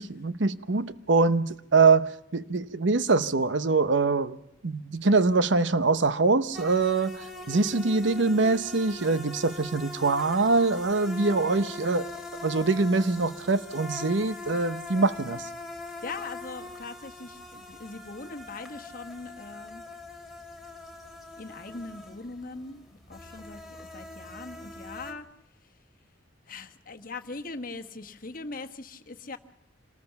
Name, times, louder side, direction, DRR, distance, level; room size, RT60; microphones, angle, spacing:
voice 1, 0.0-12.1 12.4-15.5, right 3 dB, 70° right, 0.8 m, -24 dB
sound 1, 6.5-25.1, left 2 dB, ahead, 2.6 m, -42 dB
voice 2, 16.0-19.8 21.4-25.3 25.6-25.7 26.5-29.4, left 3 dB, 45° left, 1.4 m, -41 dB
26.5 x 19.0 x 5.8 m
head